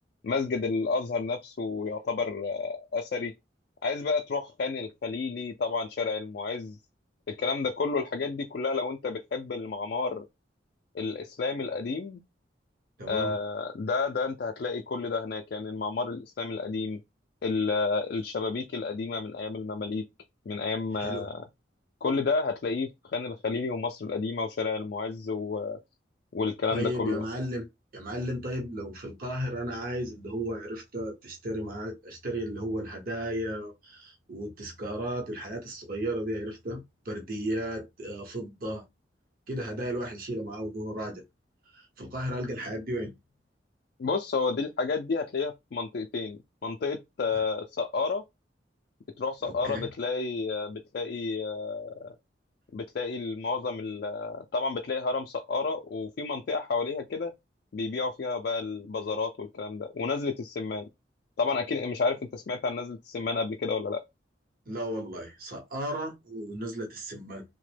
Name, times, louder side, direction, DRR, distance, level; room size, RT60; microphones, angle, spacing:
voice 1, 0.2-3.3 3.8-6.8 7.3-10.2 10.9-12.2 13.0-17.0 17.4-20.0 20.5-21.4 22.0-25.8 26.3-27.2 44.0-48.2 49.2-52.1 52.7-57.3 57.7-60.9 61.4-64.0, left 4 dB, 55° left, 0.4 m, -31 dB
voice 2, 13.0-13.4 21.0-21.3 26.7-27.7 27.9-38.8 39.5-41.2 41.7-43.1 47.3-47.4 49.4-49.9 64.7-67.4, right 1 dB, 50° right, 0.8 m, -34 dB
2.9 x 2.1 x 3.2 m
head